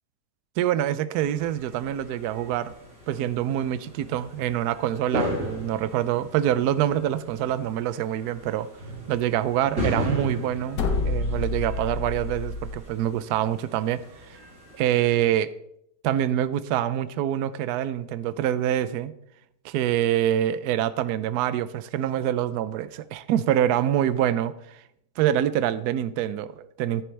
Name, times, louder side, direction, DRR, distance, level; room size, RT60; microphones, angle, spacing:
voice 1, 0.6-2.7 3.1-8.7 9.1-14.0 14.3-14.4 14.8-15.5 16.0-19.1 19.6-24.8 25.2-27.0, right 11 dB, 75° right, 1.1 m, -25 dB
sound 1, 1.1-15.3, equal, 35° right, 3.3 m, -36 dB
sound 2, 10.7-12.8, left 3 dB, 90° left, 1.7 m, -28 dB
11.0 x 10.5 x 3.3 m
omnidirectional pair, 1.8 m